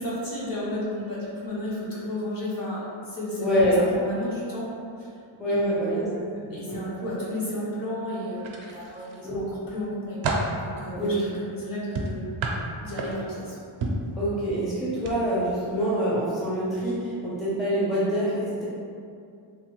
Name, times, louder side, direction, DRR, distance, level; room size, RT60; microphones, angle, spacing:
voice 1, 0.0-4.7 5.0-5.1 5.5-10.2 10.6-12.2 12.8-13.6, left 1 dB, 45° left, -7 dB, 0.8 m, -33 dB
voice 2, 3.4-3.8 5.4-6.1 6.4-6.8 9.2-9.4 11.0-11.3 14.2-18.6, equal, ahead, -9 dB, 0.5 m, -26 dB
sound 1, 8.4-9.2 9.7-10.6 11.9-13.4 13.8-14.1 15.0-15.2 15.5-15.7, right 2 dB, 75° right, 0.5 m, -30 dB
3.1 x 2.2 x 3.0 m, 2.4 s
wide cardioid pair, 155°, 48 cm